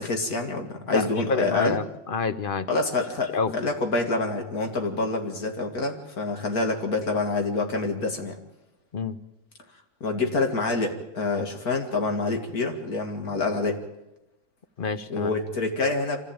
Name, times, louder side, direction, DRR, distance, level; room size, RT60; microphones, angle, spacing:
voice 1, 0.0-1.8 2.7-8.4 10.0-13.8 15.1-16.2, left 3 dB, 90° left, 4 dB, 2.8 m, -27 dB
voice 2, 0.9-2.7 3.3-3.5 8.9-9.2 14.8-15.3, left 4 dB, 40° left, 13 dB, 1.0 m, -28 dB
25.5 x 15.0 x 8.9 m, 0.94 s
omnidirectional pair, 1.5 m